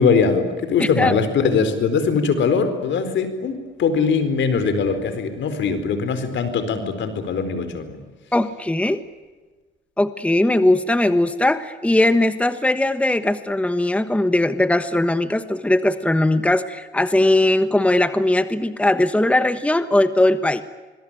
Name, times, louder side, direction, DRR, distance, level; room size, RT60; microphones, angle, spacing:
voice 1, 0.0-8.0, left 5 dB, 70° left, 10 dB, 4.5 m, -21 dB
voice 2, 0.8-1.1 8.3-9.0 10.0-20.6, left 1 dB, 5° left, 11 dB, 1.3 m, -19 dB
26.0 x 21.5 x 9.0 m, 1.3 s
cardioid pair, 90°, 20 cm